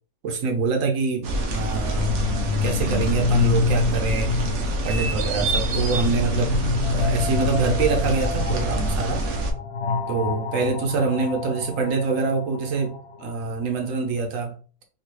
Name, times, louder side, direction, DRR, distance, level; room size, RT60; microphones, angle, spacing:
voice 1, 0.2-2.2 2.6-4.5 4.8-6.6 6.9-9.2 10.1-14.5, right 4 dB, 60° right, 3 dB, 0.9 m, -25 dB
sound 1, 1.2-9.5, right 1 dB, 90° right, 0.6 m, -26 dB
sound 2, 1.7-13.6, left 4 dB, 70° left, 0.9 m, -28 dB
3.8 x 2.4 x 3.1 m, 0.40 s
omnidirectional pair, 1.9 m